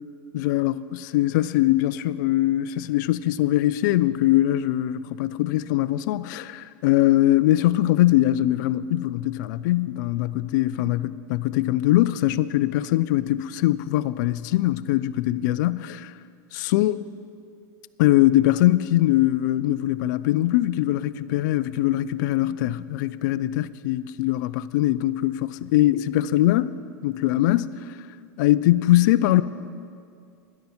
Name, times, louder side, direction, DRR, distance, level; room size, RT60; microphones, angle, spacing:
voice 1, 0.3-16.1 16.5-17.0 18.0-26.7 27.0-28.0 28.4-29.4, left 15 dB, 65° left, 0.4 m, -22 dB
13.5 x 11.0 x 4.4 m
hypercardioid pair, 110°, 11 cm